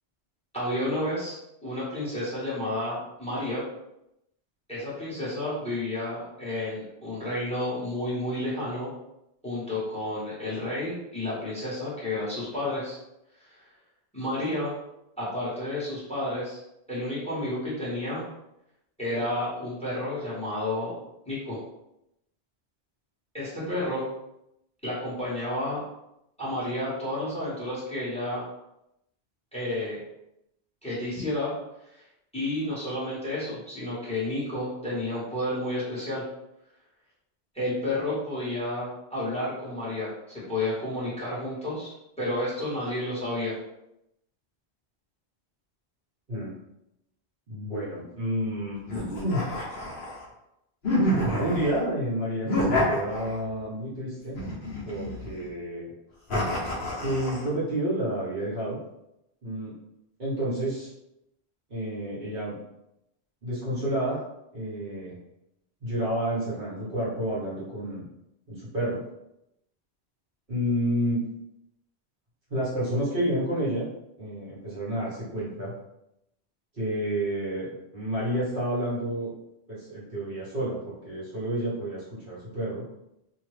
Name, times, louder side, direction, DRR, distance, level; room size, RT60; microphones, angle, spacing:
voice 1, 0.5-1.3 1.6-3.6 4.7-8.9 9.4-13.0 13.4-13.7 14.1-14.7 15.2-16.6 16.9-18.2 19.0-21.0 21.3-21.6 23.3-24.1 24.8-25.8 26.4-28.4 29.5-30.0 30.8-31.5 31.9-32.0 32.3-36.2 37.5-43.5, left 1 dB, 5° left, -9 dB, 1.4 m, -31 dB
voice 2, 47.5-49.5 51.4-54.4 54.8-55.9 56.9-58.8 59.4-59.7 60.2-60.9 61.7-62.5 63.4-64.2 64.5-65.2 65.8-68.0 68.5-69.0 70.5-71.2 72.5-73.9 74.2-75.7 76.7-79.3 79.7-82.8, right 1 dB, 55° right, -9 dB, 1.3 m, -30 dB
sound 1, 48.9-50.3 50.8-51.8 52.4-53.6 54.3-55.4 56.3-57.5, left 1 dB, 55° left, 1.0 m, -28 dB
2.8 x 2.5 x 3.2 m, 0.84 s
omnidirectional pair, 1.1 m